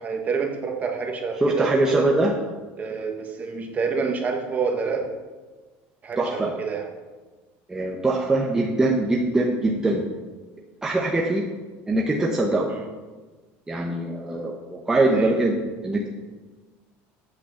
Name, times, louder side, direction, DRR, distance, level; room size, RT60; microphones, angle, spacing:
voice 1, 0.0-2.1 2.8-5.1 6.0-6.9 8.6-8.7 12.7-12.9 15.1-15.3, right 5 dB, 30° right, 3 dB, 1.5 m, -28 dB
voice 2, 1.4-2.3 6.2-6.5 7.7-10.0 10.8-11.4 11.9-12.7 13.7-15.5 15.8-16.1, right 2 dB, 10° right, -2 dB, 1.0 m, -22 dB
8.5 x 6.1 x 7.1 m, 1.3 s
supercardioid pair, 130°, 5 cm